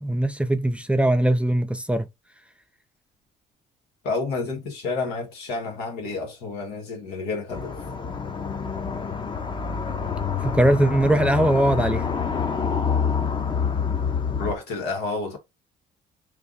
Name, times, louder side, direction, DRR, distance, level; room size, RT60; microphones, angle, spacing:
voice 1, 0.0-2.1 10.4-12.0, right 1 dB, 5° right, 0.5 m, -21 dB
voice 2, 4.0-7.8 14.4-15.4, left 3 dB, 90° left, 1.6 m, -30 dB
sound 1, 7.5-14.5, left 6 dB, 30° left, 0.7 m, -27 dB
3.4 x 2.6 x 3.9 m
cardioid pair, 110°, 17 cm